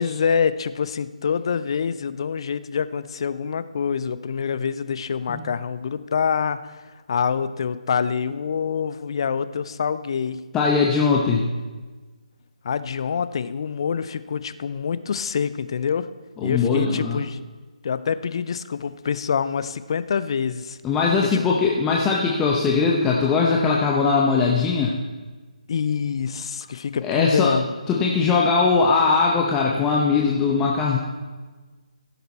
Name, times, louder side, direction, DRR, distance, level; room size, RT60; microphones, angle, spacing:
voice 1, 0.0-6.8 7.1-10.4 12.6-16.1 16.4-17.4 17.8-20.8 21.2-21.4 25.7-27.7, left 6 dB, 40° left, 14 dB, 0.5 m, -26 dB
voice 2, 10.5-11.5 16.4-17.2 20.8-25.0 27.0-27.5 27.9-31.0, left 4 dB, 10° left, -2 dB, 0.7 m, -20 dB
15.5 x 6.7 x 4.2 m, 1.3 s
figure-of-eight pair, 150°, 4 cm